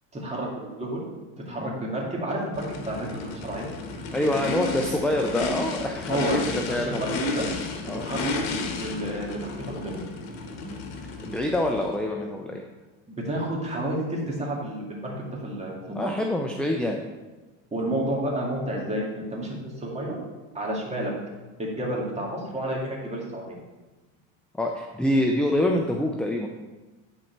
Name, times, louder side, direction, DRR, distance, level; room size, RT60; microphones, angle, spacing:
voice 1, 0.1-1.0 1.5-3.7 6.1-6.4 6.8-7.5 7.8-10.0 13.2-16.1 17.7-20.2 20.5-21.1 21.6-23.6, right 1 dB, 15° right, -2 dB, 2.1 m, -30 dB
Race car auto racing / Idling / Accelerating revving vroom, 2.5-12.0, left 3 dB, 70° left, 1.4 m, -32 dB
voice 2, 4.1-6.2 6.5-7.2 7.9-8.1 10.6-10.8 11.2-12.6 15.9-17.0 24.6-26.5, left 1 dB, 5° left, 1 dB, 0.4 m, -26 dB
10.0 x 4.3 x 4.5 m, 1.2 s
supercardioid pair, 120°, 38 cm